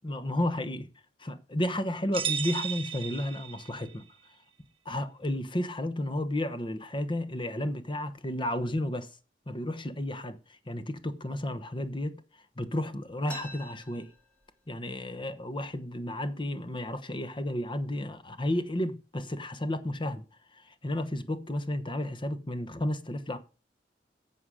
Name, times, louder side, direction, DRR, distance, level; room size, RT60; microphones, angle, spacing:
voice 1, 0.0-0.9 1.2-4.0 4.8-9.1 9.5-12.2 12.6-14.1 14.7-20.2 20.5-23.4, left 1 dB, 30° left, 1.1 m, -32 dB
sound 1, 2.1-4.0, right 8 dB, 30° right, 1.0 m, -34 dB
sound 2, 13.3-14.9 15.2-15.3 15.6-16.2 16.8-16.9 17.6-17.8 18.3-18.7, right 1 dB, 10° left, 2.8 m, -46 dB
11.5 x 7.1 x 4.9 m
head